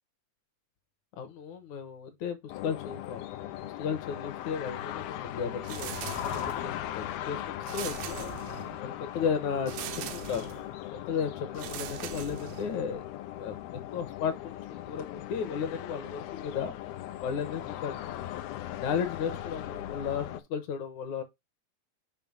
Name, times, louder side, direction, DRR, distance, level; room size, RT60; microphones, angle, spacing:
voice 1, 1.2-3.3 3.6-8.3 8.8-10.5 10.9-13.0 13.4-16.7 17.2-18.0 18.8-21.2, left 7 dB, 65° left, 2.1 m, -34 dB
sound 1, 2.5-20.4, left 12 dB, 85° left, 2.6 m, -39 dB
sound 2, 5.6-6.8 7.6-8.9 9.7-10.7 11.5-12.9, right 12 dB, 85° right, 2.5 m, -40 dB
7.3 x 5.0 x 3.8 m
omnidirectional pair, 4.2 m